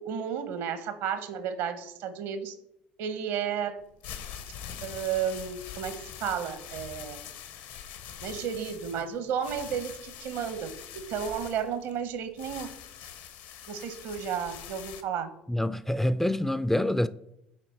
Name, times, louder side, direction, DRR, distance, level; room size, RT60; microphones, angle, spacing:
voice 1, 0.0-2.6 3.0-3.8 4.8-7.2 8.2-12.7 13.7-15.3, right 7 dB, 65° right, 0.9 m, -33 dB
sound 1, 3.8-15.0, left 9 dB, 65° left, 0.8 m, -44 dB
voice 2, 15.5-17.1, left 1 dB, 5° left, 0.3 m, -26 dB
7.6 x 4.5 x 4.3 m
hypercardioid pair, 65°, 5 cm